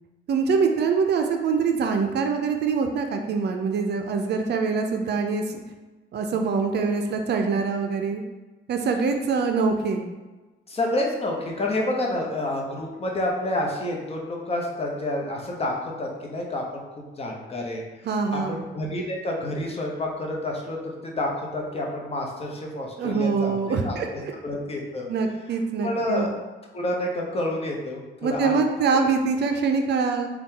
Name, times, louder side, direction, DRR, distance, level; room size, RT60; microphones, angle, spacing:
voice 1, 0.3-5.6 6.1-8.2 8.7-10.0 18.0-18.6 23.0-24.3 25.1-26.3 28.2-30.3, right 5 dB, 60° right, 4 dB, 0.5 m, -24 dB
voice 2, 10.7-17.8 18.3-24.0 24.4-25.1 25.8-26.3 26.7-28.5, left 1 dB, 30° left, -1 dB, 0.8 m, -29 dB
4.0 x 2.3 x 3.7 m, 1.2 s
cardioid pair, 90°, 20 cm